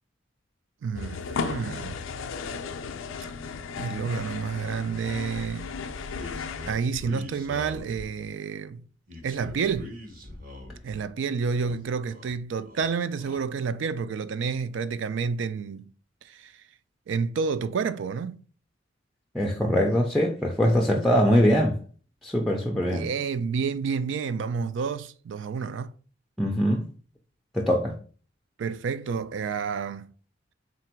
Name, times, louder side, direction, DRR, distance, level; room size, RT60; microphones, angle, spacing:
voice 1, 0.8-2.0 3.8-5.7 6.6-8.8 9.2-9.9 10.8-15.9 16.2-16.5 17.1-18.4 22.9-25.9 28.6-30.1, right 5 dB, 65° right, 0.3 m, -29 dB
sound 1, 0.9-6.7, left 5 dB, 90° left, 0.4 m, -35 dB
sound 2, 6.1-8.3 9.1-11.1 11.4-12.3 12.6-13.4, left 1 dB, 45° right, 1.0 m, -42 dB
voice 2, 19.3-21.8 22.2-23.1 26.4-26.9 27.5-28.0, equal, ahead, 0.4 m, -22 dB
3.8 x 2.5 x 4.3 m
head